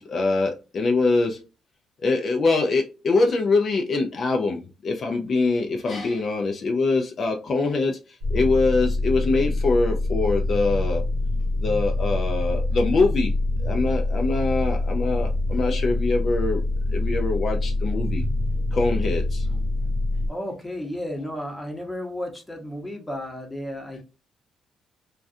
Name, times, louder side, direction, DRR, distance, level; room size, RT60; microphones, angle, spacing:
voice 1, 0.0-1.4 2.0-11.0 11.6-13.3 13.6-16.6 16.9-18.2 18.7-19.5, left 3 dB, 50° left, 0.4 m, -23 dB
sound 1, 8.2-20.3, left 2 dB, 90° right, 0.8 m, -25 dB
voice 2, 20.3-24.0, left 1 dB, 10° left, 0.8 m, -33 dB
2.3 x 2.2 x 2.5 m
cardioid pair, 90°, 0 cm